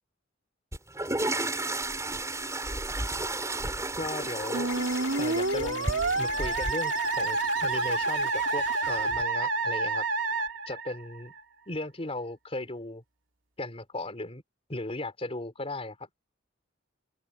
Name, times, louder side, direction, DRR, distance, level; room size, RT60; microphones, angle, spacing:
sound 1, 0.7-6.7, right 2 dB, 15° right, 5.3 m, -33 dB
voice 1, 4.0-4.7 5.2-10.1 10.7-11.4 11.7-13.0 13.6-14.4 14.7-16.1, left 2 dB, 30° left, 3.8 m, -36 dB
sound 2, 4.2-9.2, left 7 dB, 65° left, 2.0 m, -41 dB
Musical instrument, 4.5-11.4, right 3 dB, 80° right, 2.7 m, -29 dB
open air
head